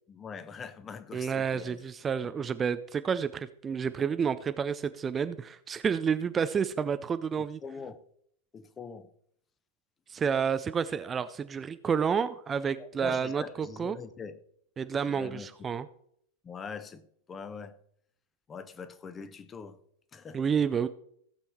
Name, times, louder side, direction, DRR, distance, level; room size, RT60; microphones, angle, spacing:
voice 1, 0.1-1.8 7.4-8.0 8.5-9.1 12.8-14.4 15.0-15.5 16.4-17.8 18.5-19.8 20.1-20.4, left 5 dB, 20° left, 1.0 m, -43 dB
voice 2, 1.1-7.6 10.1-14.0 14.8-15.9 20.3-20.9, right 6 dB, 20° right, 0.5 m, -30 dB
16.0 x 7.1 x 4.4 m
figure-of-eight pair, 90°, 0 cm